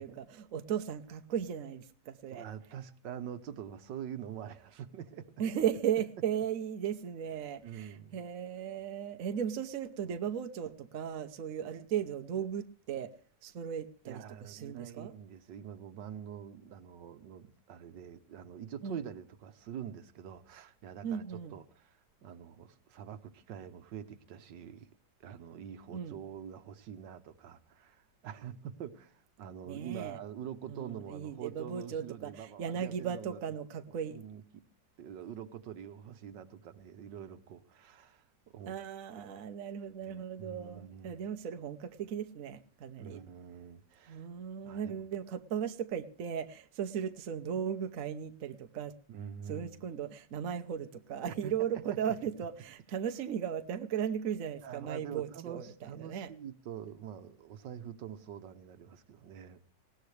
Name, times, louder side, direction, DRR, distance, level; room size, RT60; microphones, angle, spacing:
voice 1, 0.0-2.5 5.4-13.1 13.4-15.1 18.8-19.0 21.0-21.6 25.9-26.2 29.6-30.2 30.7-34.2 38.7-43.2 44.1-48.9 49.5-56.3, right 8 dB, 55° right, 8 dB, 1.1 m, -36 dB
voice 2, 2.3-5.3 7.6-8.2 14.1-24.9 25.2-33.4 34.1-34.4 35.0-38.7 39.2-39.4 40.0-41.2 43.0-44.3 44.6-45.1 49.1-49.8 51.4-51.5 54.6-59.6, right 9 dB, 75° right, 11 dB, 1.6 m, -45 dB
20.0 x 17.5 x 3.3 m, 0.43 s
omnidirectional pair, 2.0 m